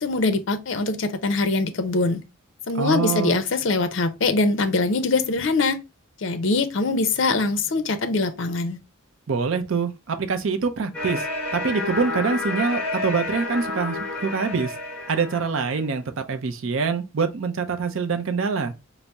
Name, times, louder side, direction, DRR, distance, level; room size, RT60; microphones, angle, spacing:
voice 1, 0.0-2.2 2.7-5.8 6.2-8.8, left 3 dB, 60° left, 0.5 m, -23 dB
voice 2, 2.8-3.4 9.3-11.3 11.5-14.7 15.1-18.7, right 5 dB, 65° right, 0.5 m, -25 dB
sound 1, 10.9-15.8, left 2 dB, 5° left, 1.3 m, -30 dB
4.0 x 2.0 x 3.3 m
head